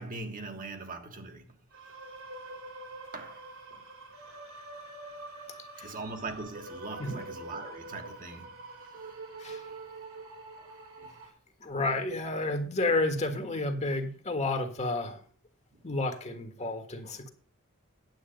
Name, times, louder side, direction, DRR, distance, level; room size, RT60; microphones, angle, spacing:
voice 1, 0.0-1.6 3.1-3.8 5.8-9.2 9.5-9.8 10.6-10.7 11.0-11.2, right 3 dB, 40° right, 1.6 m, -42 dB
sound 1, 1.7-11.3, right 2 dB, 70° right, 3.5 m, -45 dB
voice 2, 11.6-15.2 15.8-17.3, left 2 dB, 35° left, 1.6 m, -31 dB
9.8 x 8.2 x 5.2 m
head